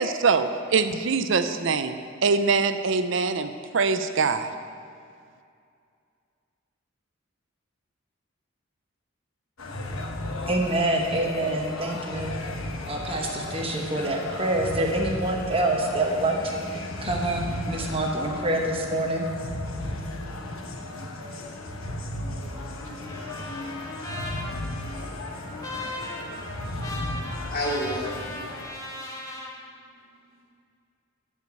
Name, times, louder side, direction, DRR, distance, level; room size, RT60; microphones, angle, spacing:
voice 1, 0.0-4.5, right 4 dB, 65° right, 10 dB, 0.6 m, -24 dB
sound 1, 9.6-28.7, left 1 dB, 80° left, 1.1 m, -35 dB
voice 2, 10.5-12.4 12.9-19.3, right 1 dB, 25° right, 1 dB, 1.0 m, -26 dB
Trumpet, 22.8-29.5, left 1 dB, 15° left, 1.1 m, -38 dB
voice 3, 26.4-28.1, equal, 45° left, -5 dB, 2.5 m, -32 dB
12.0 x 4.9 x 8.0 m, 2.3 s
head